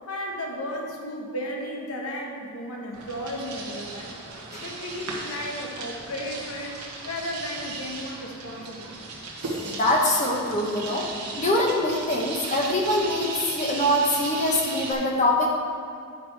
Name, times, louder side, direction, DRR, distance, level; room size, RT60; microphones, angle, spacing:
voice 1, 0.1-4.1 4.6-8.9, left 1 dB, 70° left, 0 dB, 1.3 m, -34 dB
sound 1, 2.9-14.9, right 3 dB, 90° right, 1.4 m, -36 dB
voice 2, 9.6-11.1 11.4-15.5, left 1 dB, 35° left, -2 dB, 1.0 m, -24 dB
10.0 x 5.6 x 4.7 m, 2.4 s
head